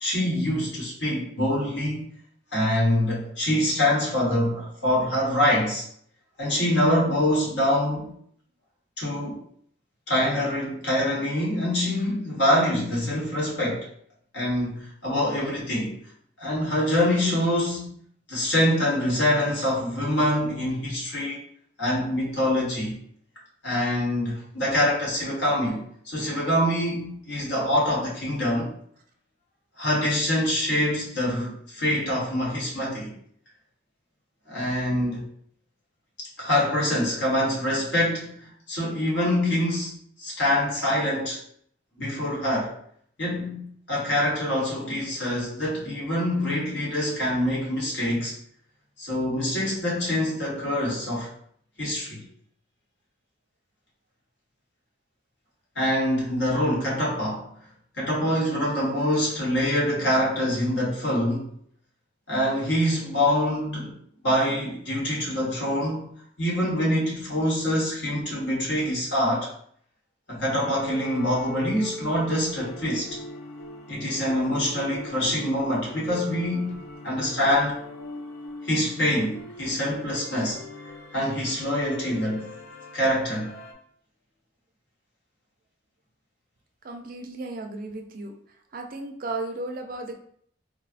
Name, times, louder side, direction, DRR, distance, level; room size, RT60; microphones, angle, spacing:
voice 1, 0.0-2.0 2.5-5.8 6.4-8.1 9.0-9.4 10.1-13.9 14.3-15.9 16.4-17.9 18.3-21.4 21.8-23.0 23.6-28.7 29.8-33.1 34.5-35.2 36.4-39.9 40.2-41.4 42.0-42.8 43.2-48.4 49.0-51.3 51.8-52.2 55.7-57.5 58.0-61.5 62.3-64.0 64.2-66.1 66.4-69.5 70.3-73.1 73.9-76.8 77.0-77.8 78.6-80.6 81.1-82.4 82.9-83.5, left 1 dB, 65° left, -4 dB, 1.2 m, -25 dB
sound 1, 70.5-83.7, left 2 dB, 90° left, 0.5 m, -41 dB
voice 2, 86.8-88.3 88.7-90.1, right 2 dB, 50° right, 3 dB, 0.4 m, -34 dB
3.9 x 2.1 x 2.4 m, 0.63 s
head